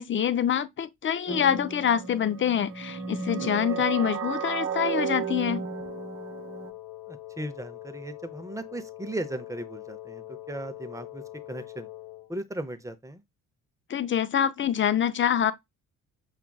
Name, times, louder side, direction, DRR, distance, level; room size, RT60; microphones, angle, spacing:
voice 1, 0.0-5.6 13.9-15.5, left 9 dB, 35° left, 0.4 m, -26 dB
sound 1, 1.3-6.7, right 6 dB, 35° right, 0.9 m, -33 dB
Wind instrument woodwind instrument, 5.6-12.3, left 16 dB, 90° left, 0.8 m, -43 dB
voice 2, 7.1-11.9 12.3-13.2, right 1 dB, 10° right, 0.6 m, -37 dB
5.7 x 2.4 x 2.2 m
hypercardioid pair, 55°, 38 cm